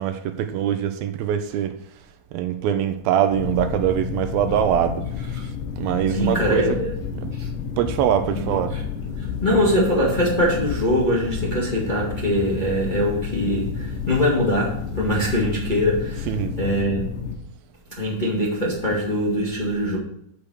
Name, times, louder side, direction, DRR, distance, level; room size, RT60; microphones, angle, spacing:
voice 1, 0.0-1.8 2.3-5.0 5.7-6.8 7.2-7.3 7.8-8.7 16.3-16.5, right 10 dB, 80° right, 2.5 m, -23 dB
sound 1, 3.3-17.4, left 6 dB, 70° left, 2.5 m, -30 dB
voice 2, 6.1-6.9 7.3-7.5 8.3-8.4 8.7-8.8 9.2-17.0 18.0-20.0, equal, 20° left, 1.5 m, -23 dB
7.2 x 6.7 x 6.4 m
omnidirectional pair, 4.3 m